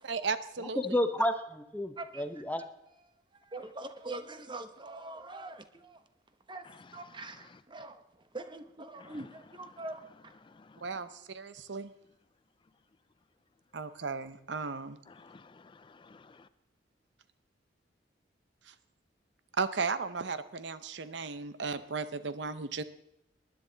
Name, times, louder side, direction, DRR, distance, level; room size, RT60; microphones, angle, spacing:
voice 1, 0.0-0.8 10.8-11.9 13.7-15.0 18.7-18.8 19.6-22.8, right 4 dB, 70° right, 0.7 m, -35 dB
voice 2, 0.6-2.6, left 1 dB, 10° left, 0.8 m, -31 dB
voice 3, 2.0-2.3 3.3-6.0 6.5-6.6 6.9-10.3, right 2 dB, 25° right, 1.0 m, -43 dB
voice 4, 6.6-7.6 9.0-9.3 9.7-9.9 10.4-11.1 15.1-16.5, left 4 dB, 25° left, 0.4 m, -55 dB
19.5 x 10.5 x 3.9 m
head